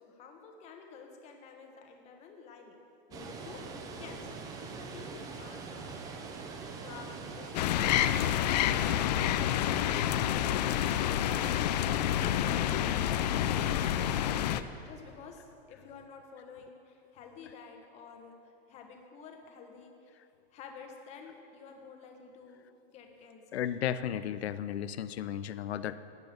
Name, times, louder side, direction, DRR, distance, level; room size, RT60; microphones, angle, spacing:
voice 1, 0.0-3.6 4.0-4.4 4.7-6.0 6.8-14.5 14.8-20.2 20.5-23.6, left 5 dB, 20° left, 3 dB, 1.3 m, -51 dB
Water, 3.1-8.1, right 4 dB, 10° right, 0.5 m, -43 dB
sound 1, 7.5-14.6, left 11 dB, 40° left, 0.5 m, -28 dB
voice 2, 23.5-26.0, left 10 dB, 85° left, 14 dB, 0.7 m, -34 dB
13.5 x 9.1 x 6.8 m, 2.7 s
supercardioid pair, 160°, 31 cm